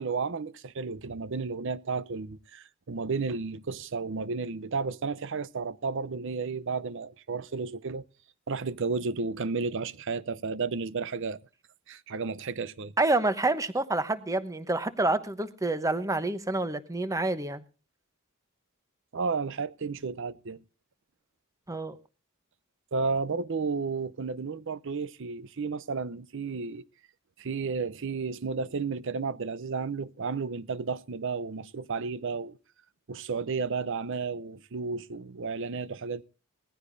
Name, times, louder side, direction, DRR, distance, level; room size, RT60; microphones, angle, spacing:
voice 1, 0.0-8.0 8.5-11.4 11.9-12.9 19.1-20.6 22.9-26.8 27.4-32.6 33.1-36.2, right 4 dB, 60° right, 0.6 m, -32 dB
voice 2, 13.0-17.6 21.7-22.0, right 2 dB, 15° right, 0.9 m, -28 dB
19.5 x 15.0 x 2.6 m
head